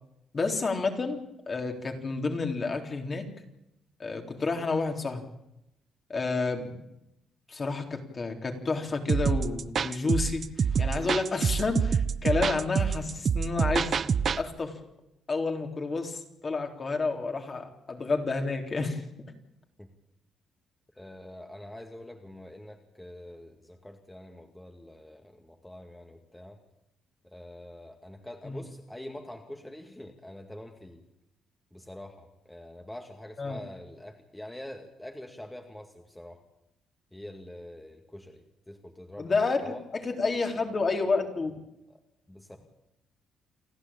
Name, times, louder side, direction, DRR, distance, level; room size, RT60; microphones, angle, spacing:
voice 1, 0.3-1.2 1.5-3.2 4.0-5.2 6.1-6.8 7.5-14.0 14.4-14.8 15.3-19.0 28.4-28.6 33.4-33.6 39.2-41.5, left 3 dB, 35° left, 4 dB, 3.7 m, -30 dB
sound 1, 9.1-14.4, right 6 dB, 50° right, 0.8 m, -27 dB
voice 2, 20.9-26.6 27.2-31.0 31.7-36.4 37.1-39.4 39.6-39.8 41.9-42.0 42.3-42.6, left 1 dB, 10° left, 3 dB, 2.3 m, -45 dB
29.0 x 11.5 x 8.9 m, 0.86 s
cardioid pair, 90°, 0 cm